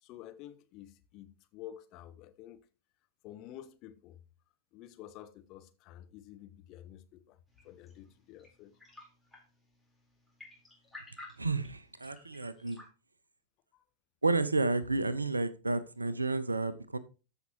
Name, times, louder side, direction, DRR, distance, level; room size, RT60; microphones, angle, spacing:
voice 1, 0.0-2.7 3.2-4.2 4.7-7.4 7.6-8.7 13.7-13.9, left 12 dB, 40° left, 1.0 m, -50 dB
sound 1, 7.5-12.9, left 2 dB, 5° left, 4.0 m, -55 dB
voice 2, 11.4-12.8 14.2-17.0, right 3 dB, 80° right, 0.7 m, -31 dB
14.0 x 5.9 x 3.0 m
figure-of-eight pair, 90°, 0 cm